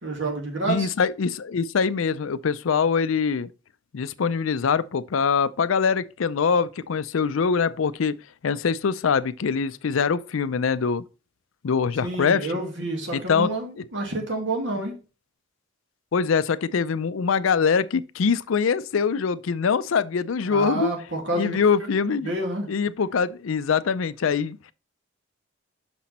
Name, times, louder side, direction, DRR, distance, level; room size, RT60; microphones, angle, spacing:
voice 1, 0.0-0.9 12.0-14.9 20.5-21.6 22.2-22.7, right 2 dB, 65° right, 2.2 m, -28 dB
voice 2, 0.7-3.5 3.9-8.1 8.4-11.0 11.6-12.5 13.1-13.5 13.8-13.9 16.1-20.9 21.3-22.3 22.7-24.7, left 5 dB, 80° left, 0.5 m, -23 dB
6.1 x 5.9 x 4.1 m
head